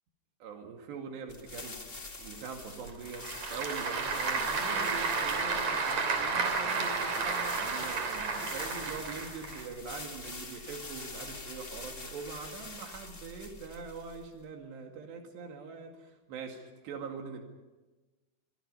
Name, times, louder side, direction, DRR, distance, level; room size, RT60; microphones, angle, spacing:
voice 1, 0.4-1.8 2.2-17.4, right 5 dB, 80° right, 3 dB, 4.3 m, -43 dB
sound 1, 1.3-14.4, left 3 dB, 45° left, 0.7 m, -45 dB
Applause / Crowd, 2.9-9.6, right 4 dB, 45° right, 4.1 m, -32 dB
26.0 x 24.0 x 5.5 m, 1.2 s
omnidirectional pair, 4.8 m